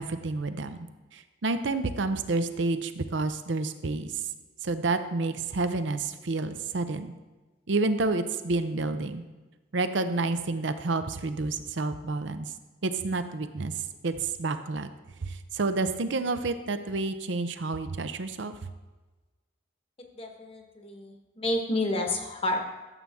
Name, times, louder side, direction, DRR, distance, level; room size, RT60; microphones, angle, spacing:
voice 1, 0.0-4.2 4.6-7.1 7.7-9.2 9.7-12.5 12.8-13.7 14.0-14.9 15.2-18.5, right 3 dB, 65° right, 10 dB, 0.6 m, -29 dB
voice 2, 20.2-22.6, left 1 dB, 30° left, 3 dB, 1.1 m, -30 dB
13.0 x 7.6 x 3.5 m, 1.2 s
head